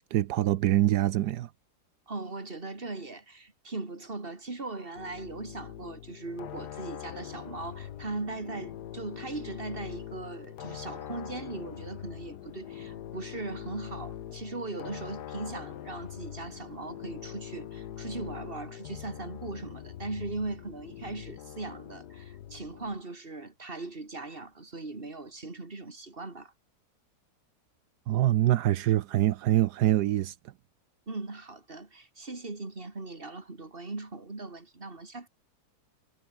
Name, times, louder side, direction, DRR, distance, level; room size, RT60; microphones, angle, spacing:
voice 1, 0.1-1.5 28.1-30.4, right 14 dB, 80° right, 1.2 m, -24 dB
voice 2, 2.1-26.5 31.1-35.3, right 3 dB, 35° right, 3.2 m, -39 dB
sound 1, 4.9-23.0, left 11 dB, 85° left, 1.5 m, -43 dB
omnidirectional pair, 1.7 m